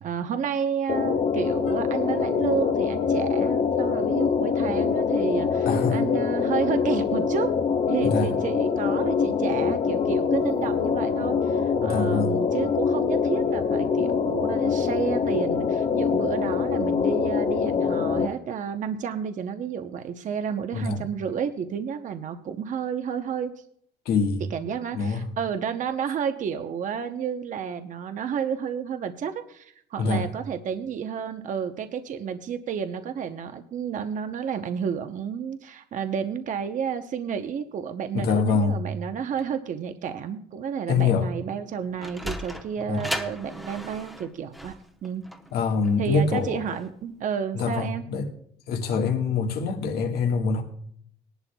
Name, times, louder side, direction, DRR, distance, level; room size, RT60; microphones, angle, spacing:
voice 1, 0.0-7.5 7.9-23.5 24.5-44.7 45.0-45.2 46.0-48.1, right 7 dB, 50° right, 0.8 m, -31 dB
sound 1, 0.9-18.3, left 6 dB, 45° left, 0.8 m, -24 dB
voice 2, 5.6-6.0 8.0-8.3 11.8-12.4 20.7-21.0 24.0-24.4 24.9-25.3 30.0-30.3 38.1-38.8 40.9-41.3 42.9-43.0 45.5-46.6 47.5-48.3 48.7-50.6, left 4 dB, 70° left, 1.6 m, -25 dB
Sliding door, 41.7-46.9, equal, ahead, 0.9 m, -36 dB
19.0 x 11.0 x 2.3 m
cardioid pair, 110°, 17 cm